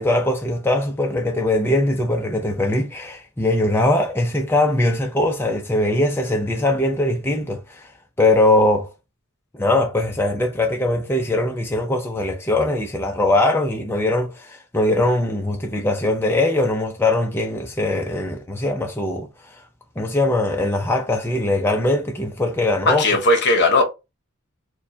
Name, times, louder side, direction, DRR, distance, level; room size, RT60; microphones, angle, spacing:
voice 1, 0.0-7.9 8.2-8.9 9.5-19.3 20.0-23.0, left 1 dB, 10° left, 0.4 m, -21 dB
voice 2, 22.9-23.8, left 2 dB, 50° left, 0.9 m, -17 dB
4.5 x 2.2 x 2.6 m
head